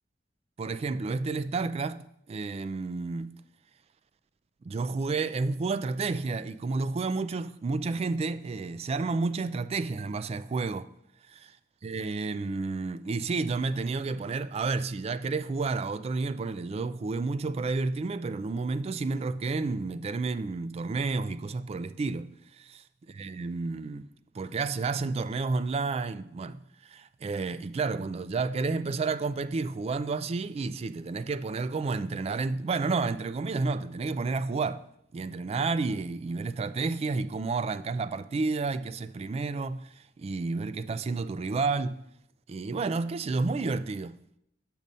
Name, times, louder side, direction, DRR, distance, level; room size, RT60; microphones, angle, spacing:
voice 1, 0.6-3.4 4.6-10.9 11.3-11.5 11.8-22.3 22.6-22.7 23.1-24.1 24.3-26.6 26.9-34.8 35.1-39.9 40.2-42.0 42.5-44.2, right 3 dB, 35° right, 0.3 m, -31 dB
6.2 x 5.3 x 5.4 m
head